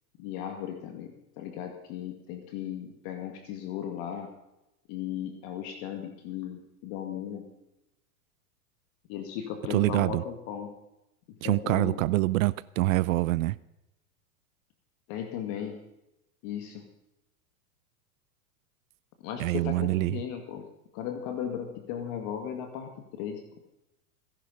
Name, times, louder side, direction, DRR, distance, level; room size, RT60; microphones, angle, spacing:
voice 1, 0.2-4.4 4.9-7.5 9.1-10.7 11.3-12.0 15.1-15.9 16.4-16.9 19.2-20.7 20.9-23.5, left 9 dB, 50° left, 6 dB, 2.1 m, -36 dB
voice 2, 9.7-10.2 11.4-13.6 19.4-20.2, right 19 dB, 60° right, 20 dB, 0.6 m, -25 dB
17.5 x 11.0 x 5.4 m, 0.89 s
hypercardioid pair, 105°, 46 cm